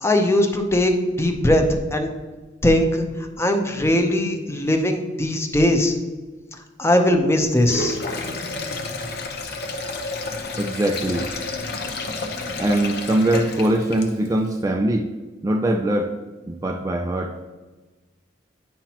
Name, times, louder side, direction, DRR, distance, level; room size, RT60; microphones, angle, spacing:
voice 1, 0.0-1.6 1.9-2.1 2.6-3.0 3.4-6.0 6.8-8.0, left 1 dB, 15° left, 4 dB, 0.7 m, -19 dB
Sink (filling or washing), 7.5-14.4, left 3 dB, 55° left, 0.8 m, -30 dB
voice 2, 10.6-11.3 12.6-15.1 15.4-16.2 16.5-17.4, right 1 dB, 20° right, 4 dB, 0.3 m, -22 dB
9.2 x 5.8 x 2.9 m, 1.3 s
head